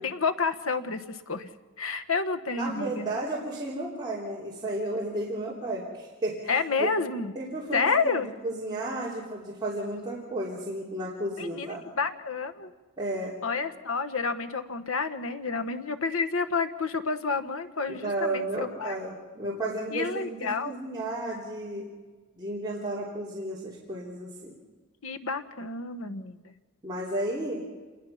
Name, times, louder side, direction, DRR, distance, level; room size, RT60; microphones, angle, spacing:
voice 1, 0.0-1.5 1.8-3.1 6.5-7.3 7.7-8.3 11.4-12.7 13.4-18.9 19.9-20.7 25.0-26.5, left 4 dB, 80° left, 9 dB, 1.3 m, -29 dB
voice 2, 2.5-6.4 6.8-6.9 7.3-11.9 13.0-13.3 17.9-21.9 22.3-24.6 26.8-27.6, right 1 dB, 20° right, -6 dB, 3.3 m, -33 dB
27.5 x 21.0 x 5.8 m, 1.3 s
head